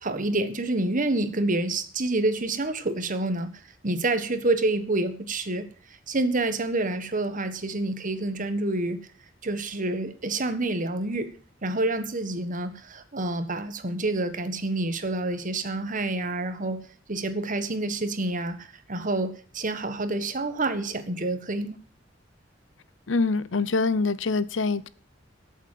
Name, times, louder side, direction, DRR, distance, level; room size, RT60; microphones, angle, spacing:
voice 1, 0.0-3.5 3.8-5.7 6.1-9.0 9.4-11.4 11.6-16.8 17.1-21.8, right 2 dB, 45° right, 1.5 m, -28 dB
voice 2, 23.1-24.9, left 3 dB, 75° left, 0.8 m, -25 dB
13.5 x 7.3 x 7.6 m
head